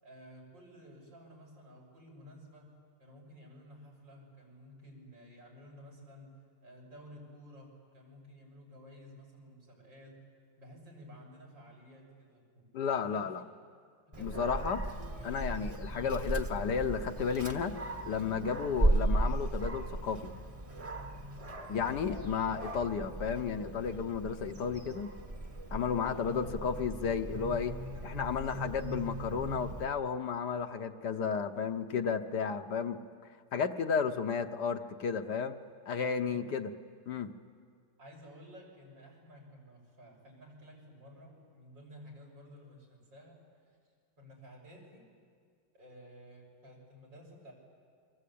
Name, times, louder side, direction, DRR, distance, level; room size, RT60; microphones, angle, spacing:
voice 1, 0.0-2.7 3.0-6.4 6.6-10.2 10.6-13.3 14.1-14.5 18.7-19.0 22.1-22.4 25.9-26.6 27.9-28.0 36.2-36.6 38.0-43.4 44.2-45.0 45.7-47.5, equal, 85° right, -2 dB, 7.5 m, -53 dB
voice 2, 12.7-13.4 14.2-14.8 15.2-17.8 18.0-20.3 21.7-25.1 25.7-27.7 28.0-33.0 33.5-35.5 35.9-36.7 37.1-37.3, left 6 dB, 70° left, 7 dB, 1.6 m, -33 dB
Dog, 14.1-29.9, right 2 dB, 20° right, 1.2 m, -36 dB
28.0 x 24.5 x 8.6 m, 2.1 s
omnidirectional pair, 1.9 m